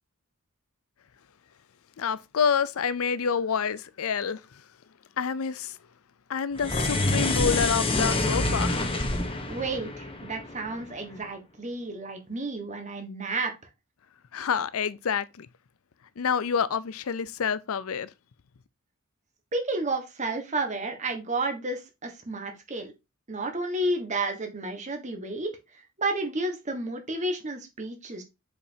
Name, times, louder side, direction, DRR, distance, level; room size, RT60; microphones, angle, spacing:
voice 1, 2.0-4.4 5.2-5.8 6.3-8.8 14.3-15.5 16.2-18.1, left 6 dB, 80° left, 0.5 m, -28 dB
sound 1, 6.6-11.0, left 2 dB, 25° left, 1.0 m, -27 dB
voice 2, 9.5-13.5 19.5-22.9 23.3-25.5 26.0-28.2, right 2 dB, 35° right, 1.4 m, -31 dB
7.2 x 5.2 x 2.8 m
head